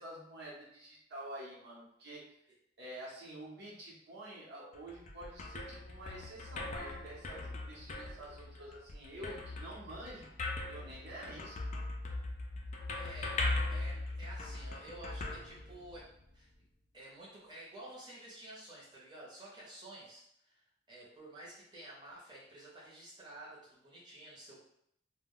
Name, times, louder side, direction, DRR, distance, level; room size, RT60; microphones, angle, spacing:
voice 1, 0.0-2.2 2.8-10.3 10.7-11.7, right 1 dB, 60° right, -5 dB, 0.8 m, -48 dB
sound 1, 4.7-16.2, left 2 dB, 40° left, 0.4 m, -40 dB
voice 2, 12.9-16.5 16.9-24.6, right 1 dB, 25° right, -7 dB, 0.8 m, -51 dB
2.2 x 2.1 x 3.6 m, 0.71 s
head